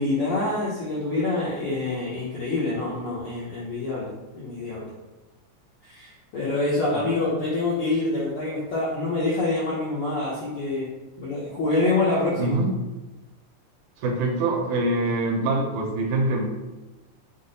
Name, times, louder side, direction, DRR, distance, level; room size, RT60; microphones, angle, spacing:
voice 1, 0.0-4.9 5.8-10.9 11.2-12.6, left 2 dB, 75° left, -8 dB, 1.3 m, -26 dB
voice 2, 12.4-12.7 14.0-16.5, right 2 dB, 75° right, 1 dB, 1.9 m, -24 dB
5.8 x 2.1 x 3.9 m, 1.1 s
omnidirectional pair, 3.7 m